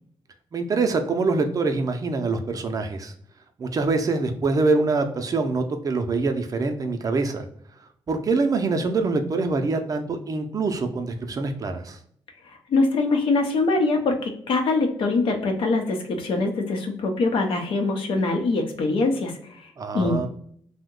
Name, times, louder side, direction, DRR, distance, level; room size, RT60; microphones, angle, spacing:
voice 1, 0.5-3.1 3.6-7.5 8.1-12.0 19.8-20.3, right 3 dB, 40° right, 6 dB, 0.5 m, -24 dB
voice 2, 12.5-20.3, left 3 dB, 75° left, 3 dB, 0.7 m, -23 dB
2.7 x 2.1 x 3.6 m, 0.64 s
cardioid pair, 95°, 9 cm